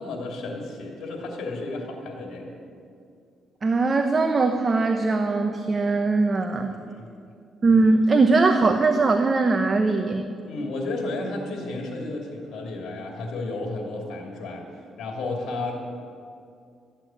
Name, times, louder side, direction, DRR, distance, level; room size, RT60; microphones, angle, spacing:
voice 1, 0.0-2.5 6.7-7.0 10.5-14.7 15.0-16.0, left 2 dB, 70° left, 0 dB, 2.9 m, -32 dB
voice 2, 3.6-6.7 7.6-10.3, right 3 dB, 35° right, 6 dB, 0.9 m, -21 dB
14.0 x 9.0 x 9.0 m, 2.4 s
cardioid pair, 90°, 0 cm